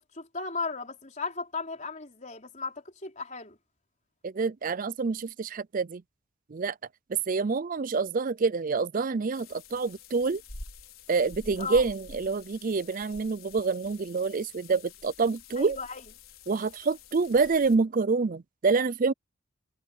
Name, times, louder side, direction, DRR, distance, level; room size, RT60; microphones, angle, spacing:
voice 1, 0.0-3.6 11.6-11.8 15.6-16.0, left 4 dB, 35° left, 4.5 m, -36 dB
voice 2, 4.2-6.0 6.5-6.7 7.1-10.4 11.1-15.8 16.5-19.1, right 4 dB, 35° right, 0.4 m, -27 dB
sound 1, 9.3-17.8, left 4 dB, 65° left, 5.1 m, -48 dB
head